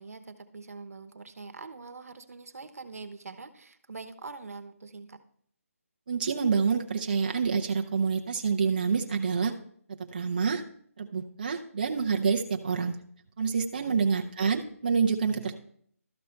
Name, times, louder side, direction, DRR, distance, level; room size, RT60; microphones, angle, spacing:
voice 1, 0.0-5.2 13.9-14.2, right 4 dB, 80° right, 8 dB, 1.0 m, -44 dB
voice 2, 6.1-9.5 10.1-10.6 11.0-13.0 13.4-15.6, right 5 dB, 35° right, 3 dB, 0.6 m, -27 dB
12.5 x 5.3 x 4.4 m, 0.63 s
hypercardioid pair, 170°, 8 cm